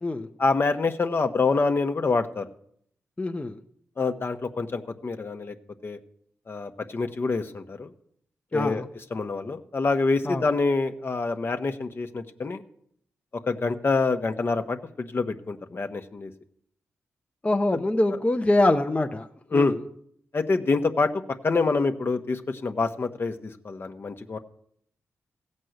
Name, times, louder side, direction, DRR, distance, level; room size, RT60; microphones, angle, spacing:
voice 1, 0.4-2.5 4.0-5.5 5.8-6.0 6.5-7.9 8.5-8.8 9.1-12.6 13.5-16.3 19.5-19.8 20.3-21.1 21.4-24.4, left 3 dB, 45° left, 6 dB, 1.0 m, -26 dB
voice 2, 3.2-3.6 8.5-8.8 10.2-10.4 17.4-19.3 19.5-19.7, left 2 dB, 25° left, 5 dB, 0.8 m, -24 dB
15.5 x 5.4 x 7.9 m, 0.67 s
cardioid pair, 55°, 5 cm